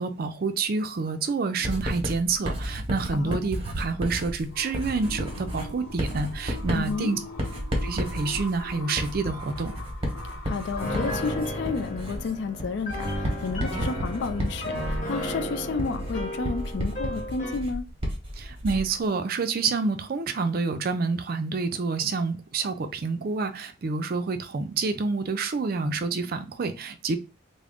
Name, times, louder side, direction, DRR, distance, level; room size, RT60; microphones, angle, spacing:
voice 1, 0.0-7.2 7.8-9.7 18.4-27.2, right 4 dB, 50° right, 0.4 m, -28 dB
Writing, 1.6-19.0, equal, 30° right, 1.0 m, -32 dB
sound 1, 4.4-11.3, left 1 dB, 80° left, 0.8 m, -42 dB
voice 2, 6.7-7.1 10.4-17.9, left 4 dB, 60° left, 0.4 m, -31 dB
Piano, 10.8-17.7, equal, 40° left, 1.2 m, -34 dB
3.6 x 2.1 x 3.5 m
head